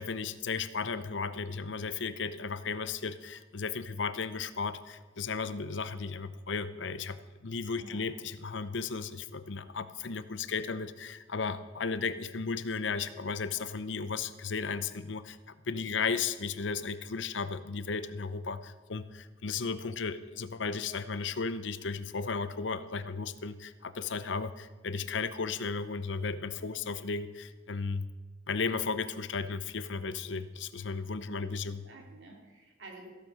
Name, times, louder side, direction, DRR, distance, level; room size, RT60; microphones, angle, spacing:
voice 1, 0.0-28.1 28.5-31.8, left 5 dB, 70° left, 13 dB, 0.7 m, -35 dB
voice 2, 7.7-8.1 31.1-33.1, right 2 dB, 75° right, 0 dB, 3.2 m, -51 dB
15.0 x 8.8 x 6.2 m, 1.3 s
head